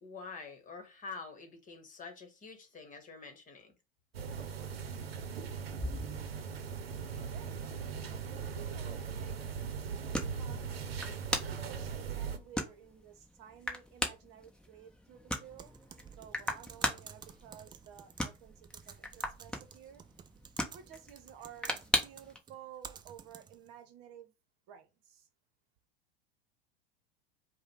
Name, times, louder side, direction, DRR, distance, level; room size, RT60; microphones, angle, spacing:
voice 1, 0.0-3.7, left 4 dB, 25° left, 1.4 m, -47 dB
Bookshop - Shop - Interior - Quiet - Some Voices, 4.1-12.4, right 6 dB, 85° right, 0.7 m, -39 dB
sound 1, 5.7-22.4, left 1 dB, 5° left, 0.9 m, -40 dB
voice 2, 7.3-8.0 8.5-10.7 11.3-15.7 16.1-20.0 20.7-24.3 24.7-25.3, right 9 dB, 50° right, 1.0 m, -53 dB
Typing, 15.6-23.7, right 7 dB, 15° right, 0.3 m, -52 dB
4.9 x 2.3 x 4.6 m
hypercardioid pair, 95°, 29 cm